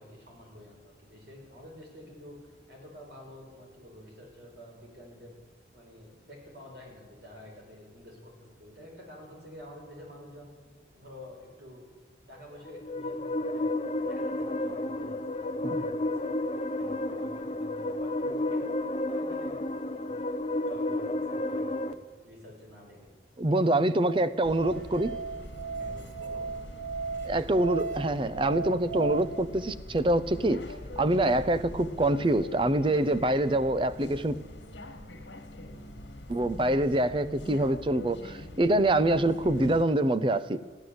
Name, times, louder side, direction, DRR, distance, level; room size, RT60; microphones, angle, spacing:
voice 1, 0.0-5.4 5.7-10.5 10.9-11.8 12.3-16.4 16.7-20.2 20.6-21.9 22.2-23.1 25.7-26.4 35.6-36.0, left 1 dB, 65° right, -1 dB, 5.3 m, -49 dB
sound 1, 12.5-21.9, left 1 dB, 35° left, 0.6 m, -31 dB
voice 2, 23.4-25.1 27.2-30.6 31.0-34.4 36.3-40.6, right 1 dB, 30° right, 14 dB, 0.5 m, -25 dB
Musical instrument, 23.9-29.2, right 5 dB, 45° right, 1.9 m, -36 dB
sound 2, 24.4-39.9, left 1 dB, 85° left, 1.7 m, -44 dB
14.5 x 11.0 x 7.9 m, 1.5 s
head